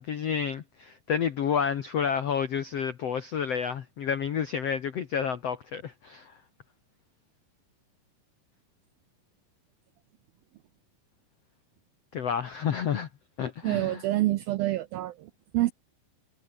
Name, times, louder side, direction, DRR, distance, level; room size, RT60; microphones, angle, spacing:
voice 1, 0.0-6.3 12.1-13.1 13.4-14.0, left 7 dB, 90° left, 1.4 m, -30 dB
voice 2, 13.6-15.7, right 16 dB, 80° right, 2.1 m, -27 dB
omnidirectional pair, 5.2 m